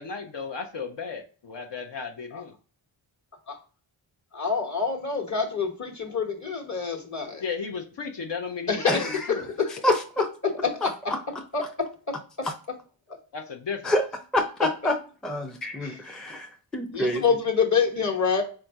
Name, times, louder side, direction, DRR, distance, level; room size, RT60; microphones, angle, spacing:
voice 1, 0.0-2.5 7.4-9.5 13.3-13.9, left 5 dB, 60° left, 3 dB, 0.7 m, -34 dB
voice 2, 4.3-7.4 8.7-9.1 9.6-9.7 10.5-10.9 11.5-11.6 15.8-16.3 16.9-18.4, left 5 dB, 35° left, 1 dB, 1.2 m, -26 dB
voice 3, 8.9-9.2 9.8-10.3 10.8-11.2 12.4-12.5 13.8-14.0 14.3-15.0 15.2-17.2, left 1 dB, ahead, 4 dB, 0.5 m, -27 dB
4.3 x 2.5 x 4.5 m, 0.39 s
cardioid pair, 70°, 48 cm